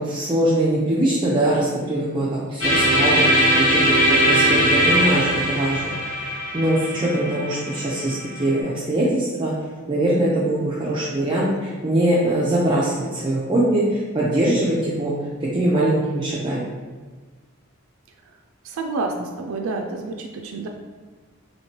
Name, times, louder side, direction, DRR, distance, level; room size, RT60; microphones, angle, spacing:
voice 1, 0.0-5.9 6.5-9.5 9.9-15.1 15.4-16.7, right 1 dB, 25° right, -7 dB, 0.5 m, -22 dB
sound 1, 2.6-8.5, equal, 90° left, 1.4 m, -20 dB
voice 2, 18.6-20.7, right 3 dB, 80° right, 3 dB, 0.4 m, -28 dB
3.1 x 2.8 x 4.3 m, 1.4 s
head